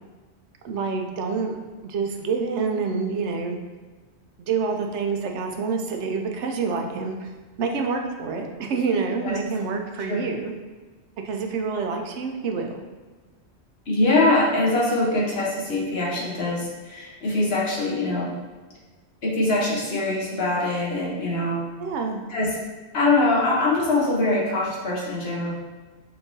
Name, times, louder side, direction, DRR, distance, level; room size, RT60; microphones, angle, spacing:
voice 1, 0.6-3.6 4.4-7.3 7.6-10.5 11.2-12.8 21.8-22.2, right 5 dB, 80° right, 3 dB, 0.9 m, -27 dB
voice 2, 13.9-18.3 19.2-21.6 22.3-22.5 22.9-25.5, left 2 dB, 65° left, -4 dB, 1.3 m, -23 dB
5.4 x 3.4 x 2.6 m, 1.3 s
omnidirectional pair, 1.2 m